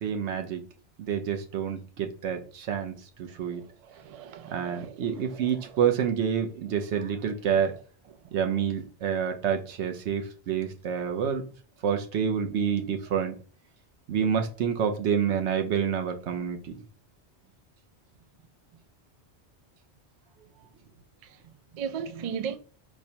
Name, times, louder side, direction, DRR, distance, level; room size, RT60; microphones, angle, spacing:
voice 1, 0.0-0.6 1.0-3.6 4.5-7.8 8.3-11.5 11.8-13.3 14.1-16.8, right 7 dB, 85° right, 1.0 m, -28 dB
voice 2, 3.3-5.8 7.5-7.8 8.1-8.3 21.2-22.6, right 7 dB, 60° right, 0.4 m, -39 dB
4.4 x 2.2 x 2.8 m
omnidirectional pair, 1.1 m